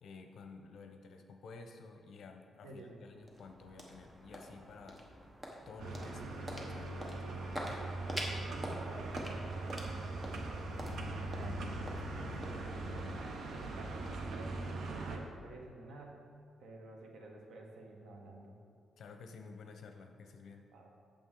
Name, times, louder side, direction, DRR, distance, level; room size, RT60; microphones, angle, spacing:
voice 1, 0.0-5.0 5.7-7.9 19.0-20.7, left 4 dB, 65° left, 5 dB, 0.7 m, -52 dB
voice 2, 2.6-3.0 8.5-10.5 11.3-11.6 12.1-12.9 13.5-14.0 14.3-14.6 14.9-16.3 16.6-18.6 20.7-20.9, right 2 dB, 85° right, 1 dB, 1.2 m, -52 dB
sound 1, 2.8-15.2, equal, 15° right, 1.0 m, -47 dB
sound 2, 5.8-15.2, right 2 dB, 65° right, 0.8 m, -41 dB
8.7 x 6.8 x 3.8 m, 2.2 s
wide cardioid pair, 155°, 0 cm